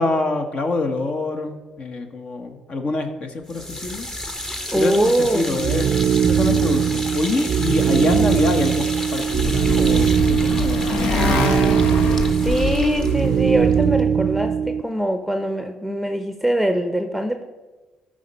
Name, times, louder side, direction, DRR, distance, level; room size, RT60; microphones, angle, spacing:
voice 1, 0.0-4.1 4.7-8.9 9.1-11.4, left 3 dB, 50° left, 6 dB, 1.2 m, -25 dB
sound 1, 3.5-14.5, left 1 dB, 20° left, 1.2 m, -33 dB
voice 2, 4.7-5.6 10.9-11.8 12.4-17.4, right 1 dB, ahead, 6 dB, 0.8 m, -23 dB
sound 2, 5.6-14.8, right 8 dB, 55° right, 0.4 m, -20 dB
Motorcycle, 8.8-13.8, left 3 dB, 70° left, 0.9 m, -26 dB
13.5 x 5.1 x 5.3 m, 1.2 s
hypercardioid pair, 50°, 3 cm